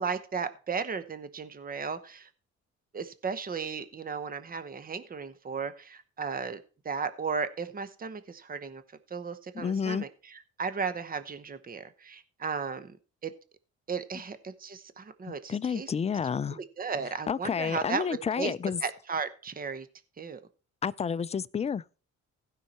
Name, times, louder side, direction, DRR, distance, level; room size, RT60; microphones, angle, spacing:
voice 1, 0.0-2.3 2.9-8.8 9.1-13.0 13.2-13.3 13.9-15.9 16.6-18.5 18.8-19.9 20.2-20.4, right 5 dB, 30° right, 1.0 m, -35 dB
voice 2, 9.5-10.0 15.3-16.6 17.3-18.8 20.8-21.8, left 6 dB, 20° left, 0.4 m, -30 dB
15.5 x 5.7 x 4.3 m
cardioid pair, 90°, 30 cm